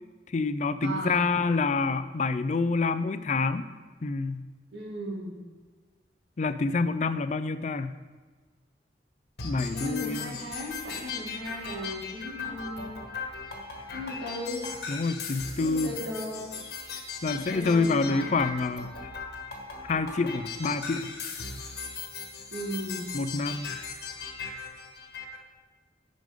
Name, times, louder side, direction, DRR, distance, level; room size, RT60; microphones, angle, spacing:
voice 1, 0.3-3.6 4.0-4.4 6.4-7.9 9.4-10.3 14.9-15.9 17.2-18.9 19.9-21.1 23.1-23.7, left 3 dB, 45° left, 12 dB, 0.4 m, -27 dB
voice 2, 0.8-1.3 4.7-5.4 9.7-13.0 13.9-14.6 15.6-16.5 17.3-18.3 22.5-23.1, equal, 85° right, -3 dB, 2.4 m, -36 dB
sound 1, 9.4-25.4, left 4 dB, 65° left, 1.4 m, -38 dB
10.0 x 5.2 x 5.2 m, 1.4 s
head